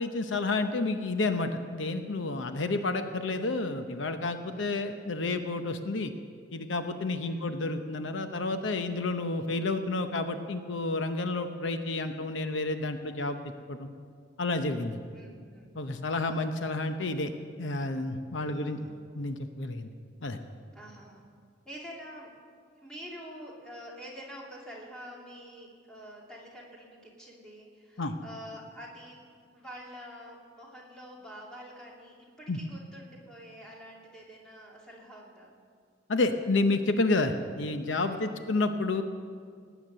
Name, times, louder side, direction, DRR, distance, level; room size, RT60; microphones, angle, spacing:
voice 1, 0.0-6.1 6.5-13.9 14.4-15.0 15.7-17.3 17.6-18.8 19.1-19.9 20.2-20.4 28.0-28.1 32.5-32.6 36.1-39.0, left 2 dB, 80° left, 8 dB, 0.8 m, -30 dB
voice 2, 4.6-5.2 7.2-7.5 15.1-15.7 18.4-18.9 20.7-21.2 21.6-22.3 22.8-29.2 29.5-35.5 38.1-38.3, equal, 5° left, -4 dB, 2.7 m, -47 dB
18.0 x 9.2 x 6.7 m, 2.1 s
head